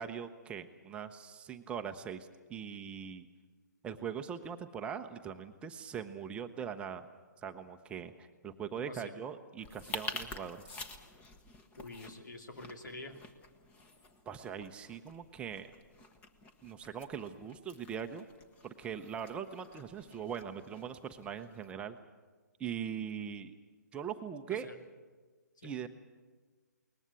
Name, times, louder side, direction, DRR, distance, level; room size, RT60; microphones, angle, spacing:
voice 1, 0.0-3.3 3.8-7.1 7.4-10.7 14.3-15.7 16.6-18.3 18.6-22.0 22.6-23.5 23.9-24.7 25.6-25.9, right 8 dB, 10° right, 6 dB, 0.7 m, -41 dB
voice 2, 8.8-9.1 11.8-13.2 24.5-24.8 25.6-25.8, left 2 dB, 85° left, 5 dB, 2.8 m, -47 dB
sound 1, 9.6-21.7, left 3 dB, 15° left, 1.1 m, -49 dB
21.5 x 20.0 x 8.3 m, 1.4 s
hypercardioid pair, 150°, 10 cm